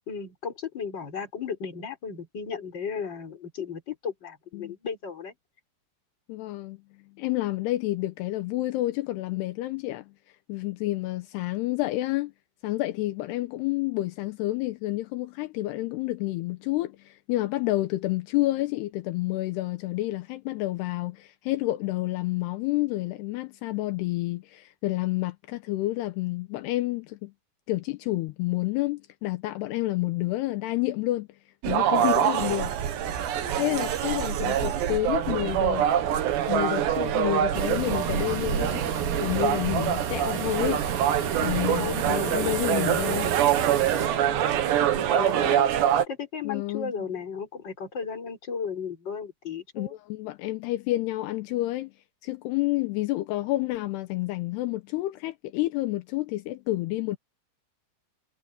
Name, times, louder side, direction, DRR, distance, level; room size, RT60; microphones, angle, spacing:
voice 1, 0.1-5.3 41.7-42.6 44.1-45.7 46.1-49.9, left 6 dB, 25° left, 4.8 m, -35 dB
voice 2, 6.3-6.8 7.2-10.1 10.5-12.3 12.6-27.3 27.7-31.3 31.7-32.7 33.6-36.0 36.5-38.8 39.2-40.8 41.4-43.4 46.4-46.9 49.8-51.9 52.2-57.2, left 17 dB, 80° left, 2.8 m, -29 dB
sound 1, 31.6-46.0, right 10 dB, 85° right, 4.0 m, -25 dB
sound 2, 37.5-44.1, right 6 dB, 60° right, 3.8 m, -32 dB
omnidirectional pair, 4.8 m